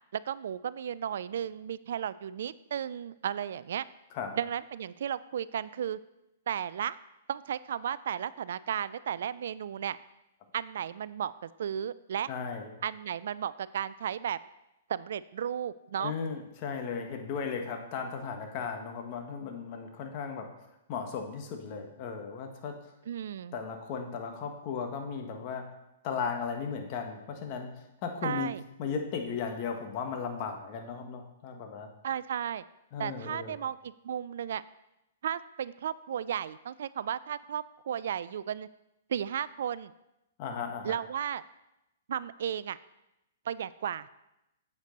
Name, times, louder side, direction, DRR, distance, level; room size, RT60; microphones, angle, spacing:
voice 1, 0.1-3.9 4.3-6.0 6.5-7.0 7.3-10.0 10.5-12.3 12.8-14.4 14.9-16.1 23.1-23.6 28.2-28.6 32.0-32.6 33.0-34.6 35.2-38.7 39.1-39.9 40.8-41.4 42.1-42.8 43.5-44.3, right 9 dB, 65° right, 17 dB, 0.3 m, -34 dB
voice 2, 12.3-12.7 16.0-20.5 20.9-22.7 23.5-25.6 26.0-27.7 28.0-28.5 28.8-31.9 32.9-33.5 40.4-41.0, left 6 dB, 45° left, 4 dB, 1.6 m, -36 dB
8.2 x 8.1 x 4.0 m, 0.90 s
hypercardioid pair, 120°, 0 cm